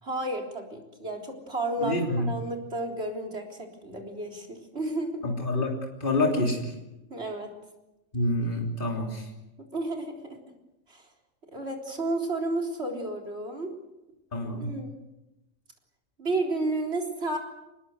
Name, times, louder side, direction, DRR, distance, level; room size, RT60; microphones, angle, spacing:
voice 1, 0.0-5.2 7.1-7.5 9.6-10.4 10.9-11.1 11.5-13.7 14.6-14.9 16.2-17.4, right 2 dB, 60° right, 1 dB, 4.1 m, -32 dB
voice 2, 1.8-2.3 5.2-6.7 8.1-9.3 14.3-14.7, left 1 dB, 45° left, 1 dB, 3.5 m, -27 dB
24.0 x 21.0 x 8.0 m, 1.0 s
omnidirectional pair, 1.3 m